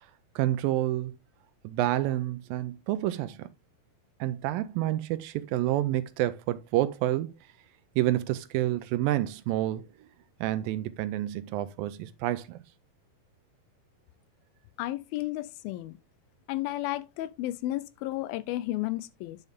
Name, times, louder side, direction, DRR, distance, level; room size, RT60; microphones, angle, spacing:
voice 1, 0.4-1.2 1.6-3.5 4.2-7.3 8.0-9.9 10.4-12.6, right 14 dB, 80° right, 2.2 m, -28 dB
voice 2, 14.8-16.0 16.5-19.4, left 16 dB, 80° left, 2.3 m, -33 dB
9.4 x 5.5 x 3.5 m
omnidirectional pair, 4.3 m